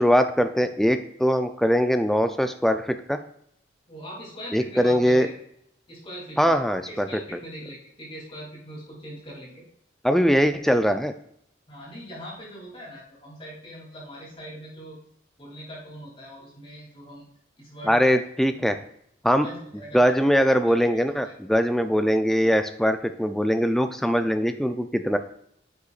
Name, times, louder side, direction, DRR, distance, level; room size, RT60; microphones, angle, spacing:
voice 1, 0.0-3.2 4.5-5.3 6.4-7.1 10.0-11.1 17.9-18.8 19.2-19.5 19.9-25.2, equal, ahead, 8 dB, 0.5 m, -21 dB
voice 2, 3.9-5.3 5.9-6.6 6.9-9.6 10.8-10.9 11.7-15.0 15.4-17.2 17.6-18.2 18.5-18.8 19.3-20.1 20.9-21.3, equal, 30° left, -5 dB, 3.1 m, -41 dB
9.7 x 6.8 x 2.5 m, 0.71 s
head